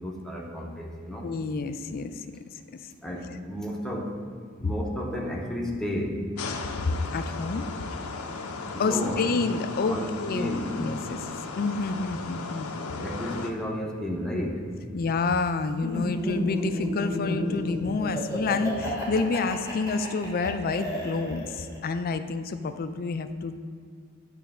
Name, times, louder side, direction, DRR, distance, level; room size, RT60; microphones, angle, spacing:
voice 1, 0.0-1.3 3.0-4.1 4.6-6.2 8.7-9.2 9.9-10.1 10.3-10.8 13.0-14.6, left 1 dB, ahead, -1 dB, 0.8 m, -32 dB
voice 2, 1.2-2.2 6.8-7.7 8.8-11.3 11.6-12.7 14.9-23.6, left 4 dB, 45° left, 10 dB, 0.4 m, -28 dB
sound 1, 6.4-13.5, left 3 dB, 85° left, 0.6 m, -36 dB
Laughter, 15.8-21.8, left 1 dB, 15° right, 1.6 m, -32 dB
9.3 x 3.3 x 6.1 m, 2.1 s
head